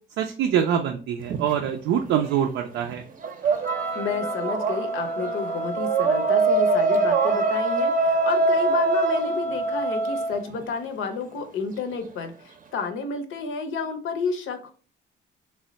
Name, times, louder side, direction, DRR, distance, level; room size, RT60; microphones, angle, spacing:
voice 1, 0.2-3.0, right 9 dB, 85° right, 4 dB, 0.4 m, -24 dB
sound 1, 1.2-2.5 2.8-10.6, right 3 dB, 45° right, 0.6 m, -24 dB
Wind instrument woodwind instrument, 3.6-10.4, right 1 dB, 10° left, 0.4 m, -29 dB
voice 2, 3.9-14.7, left 5 dB, 85° left, 6 dB, 0.6 m, -31 dB
3.2 x 2.1 x 3.9 m, 0.40 s
cardioid pair, 90°, 20 cm